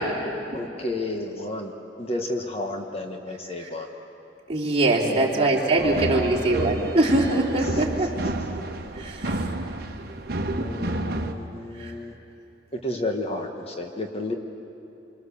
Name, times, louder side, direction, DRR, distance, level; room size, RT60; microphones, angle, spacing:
voice 1, 0.5-1.7 2.0-3.9 5.0-6.8 10.6-12.1 12.8-13.5 13.8-14.3, left 1 dB, 30° left, 3 dB, 1.4 m, -31 dB
voice 2, 4.5-8.3 9.0-9.4 10.3-10.7 11.8-11.9, right 2 dB, 30° right, -2 dB, 3.2 m, -23 dB
sound 1, 5.8-11.3, right 1 dB, 55° right, 1.3 m, -31 dB
26.5 x 25.0 x 7.1 m, 2.9 s
head